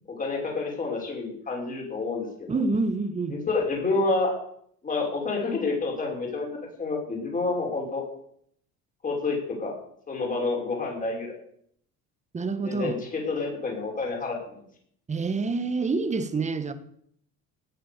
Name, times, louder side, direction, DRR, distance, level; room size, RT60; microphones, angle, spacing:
voice 1, 0.2-2.5 3.3-4.3 4.8-6.5 6.8-8.0 9.0-9.7 10.1-11.4 12.6-14.6, left 3 dB, 25° left, 0 dB, 5.9 m, -28 dB
voice 2, 2.5-3.4 12.3-13.0 15.1-16.7, right 3 dB, 20° right, 11 dB, 1.6 m, -27 dB
18.5 x 10.0 x 7.0 m, 0.66 s
cardioid pair, 145°, 33 cm